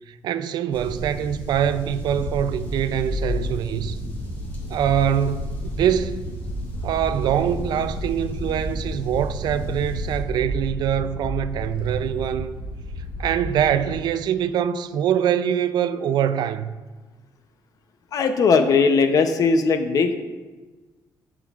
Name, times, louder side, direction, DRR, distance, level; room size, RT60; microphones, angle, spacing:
voice 1, 0.1-4.0 4.7-6.2 6.8-12.6 13.2-16.8, right 9 dB, 70° right, 0.3 m, -24 dB
sound 1, 0.7-10.2, equal, 25° left, 1.9 m, -34 dB
sound 2, 2.0-14.0, equal, 70° left, 1.5 m, -32 dB
voice 2, 18.1-20.1, left 4 dB, 55° left, 0.6 m, -18 dB
11.0 x 5.9 x 2.4 m
cardioid pair, 155°, 8 cm